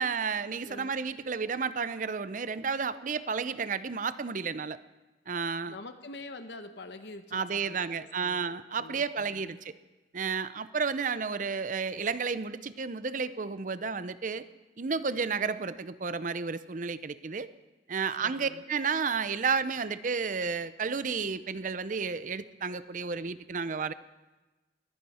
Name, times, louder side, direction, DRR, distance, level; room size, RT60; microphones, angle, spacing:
voice 1, 0.0-4.8 5.3-5.8 7.3-9.7 10.1-14.5 14.8-17.5 17.9-23.9, right 5 dB, 45° right, 14 dB, 0.6 m, -32 dB
voice 2, 0.6-1.0 5.7-9.6 18.2-18.6, left 2 dB, 65° left, 8 dB, 0.9 m, -46 dB
21.5 x 15.0 x 4.3 m, 1.2 s
head